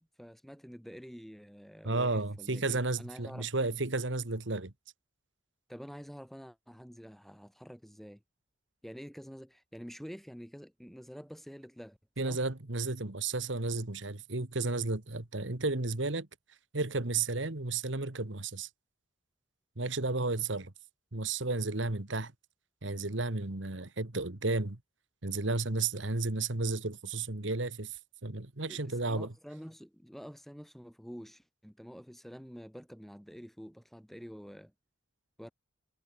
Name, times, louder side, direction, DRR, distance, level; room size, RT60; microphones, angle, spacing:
voice 1, 0.0-3.5 5.7-8.2 8.8-12.0 12.2-12.4 28.7-34.7 35.4-35.5, equal, ahead, 2.6 m, -48 dB
voice 2, 1.8-4.7 12.2-16.3 16.7-18.7 19.8-20.7 21.1-22.3 22.8-24.8 25.2-29.3, right 3 dB, 75° right, 1.8 m, -33 dB
head